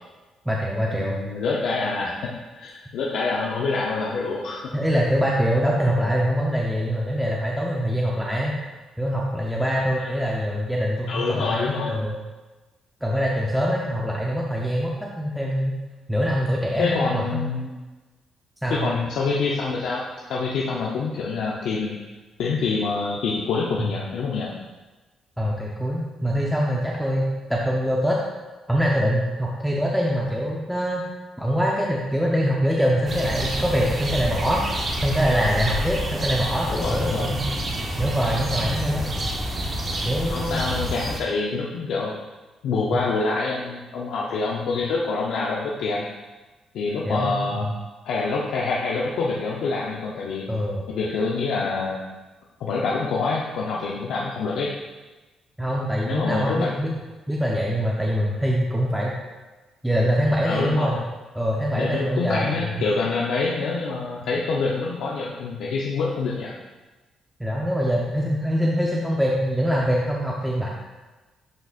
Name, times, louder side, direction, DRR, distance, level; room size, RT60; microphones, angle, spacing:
voice 1, 0.5-1.2 4.7-8.6 9.0-12.2 13.0-15.8 16.1-17.4 18.6-18.9 23.8-23.9 25.4-28.2 28.7-31.0 31.4-34.6 35.0-37.4 38.0-39.1 40.0-40.6 42.9-43.0 47.1-47.7 50.5-50.9 55.6-56.9 57.3-59.1 59.8-61.0 61.3-62.8 67.4-70.7, equal, ahead, -3 dB, 0.7 m, -24 dB
voice 2, 1.0-4.6 9.9-10.1 11.1-12.0 16.8-17.7 18.7-22.0 22.4-24.5 36.4-37.3 40.3-42.1 42.6-46.1 46.7-47.7 48.1-50.4 50.9-52.0 52.6-54.7 56.1-56.7 60.4-61.0 61.7-66.5, left 4 dB, 80° left, -3 dB, 0.7 m, -26 dB
sound 1, 33.1-41.2, equal, 40° right, 1.1 m, -28 dB
10.5 x 4.0 x 2.5 m, 1.2 s
cardioid pair, 90°, 0 cm